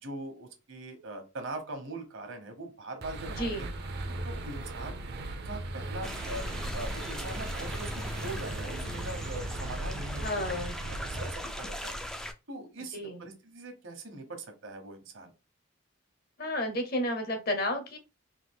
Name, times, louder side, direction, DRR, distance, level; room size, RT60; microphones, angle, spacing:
voice 1, 0.0-3.7 4.2-5.1 5.4-6.4 6.7-7.9 8.2-10.5 10.9-12.0 12.5-15.3, right 2 dB, 70° right, 5 dB, 1.1 m, -41 dB
sound 1, 3.0-11.3, right 2 dB, 50° right, 0.6 m, -38 dB
voice 2, 3.4-3.7 10.2-10.7 12.9-13.2 16.4-18.0, left 1 dB, 50° left, 6 dB, 0.8 m, -32 dB
sound 2, 6.0-12.3, equal, 5° left, 0.3 m, -39 dB
3.6 x 2.4 x 3.6 m, 0.28 s
head